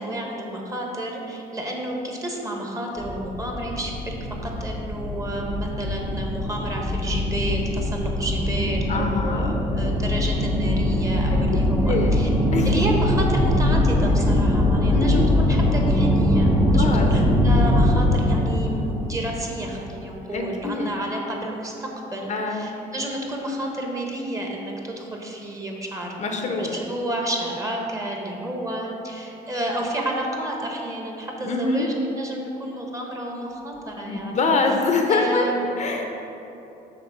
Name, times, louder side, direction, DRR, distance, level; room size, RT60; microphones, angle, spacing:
voice 1, 0.0-4.2 4.4-12.3 12.6-26.1 26.5-34.5 35.1-35.9, right 1 dB, 20° right, 0 dB, 1.0 m, -30 dB
sound 1, 3.0-20.0, left 1 dB, ahead, 0.6 m, -22 dB
voice 2, 8.9-9.6 11.3-11.4 11.8-12.2 12.5-12.7 14.9-15.3 16.6-17.1 20.3-20.9 22.3-22.7 26.2-26.8 31.4-31.9 34.1-35.5 35.8-36.1, left 3 dB, 45° left, 3 dB, 0.7 m, -24 dB
6.6 x 3.5 x 5.9 m, 3.0 s
cardioid pair, 110°, 17 cm